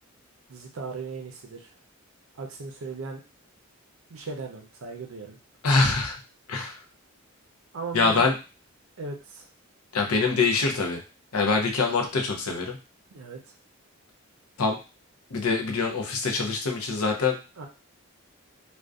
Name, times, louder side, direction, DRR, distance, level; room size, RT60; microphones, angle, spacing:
voice 1, 0.5-1.7 2.3-3.2 4.1-5.4 7.7-8.3 9.0-9.5 13.1-13.4 17.6-17.7, right 4 dB, 65° right, 2 dB, 0.5 m, -37 dB
voice 2, 5.6-6.2 6.5-6.8 7.9-8.4 9.9-11.0 11.3-12.8 14.6-14.8 15.3-17.4, left 4 dB, 80° left, 3 dB, 0.6 m, -24 dB
2.5 x 2.1 x 2.3 m, 0.31 s
head